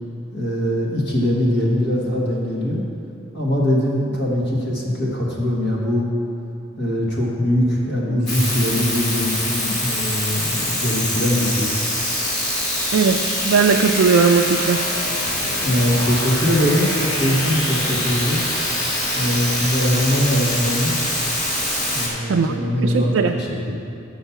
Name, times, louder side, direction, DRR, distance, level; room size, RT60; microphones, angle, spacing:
voice 1, 0.3-2.8 3.3-6.1 6.8-11.7 15.6-18.4 19.1-21.0 21.9-23.7, left 1 dB, 60° left, -4 dB, 1.6 m, -21 dB
sound 1, 8.3-22.1, left 1 dB, 40° left, 1.6 m, -24 dB
voice 2, 12.9-14.9 22.3-23.4, right 5 dB, 70° right, 4 dB, 0.3 m, -18 dB
6.4 x 5.8 x 7.0 m, 2.6 s
head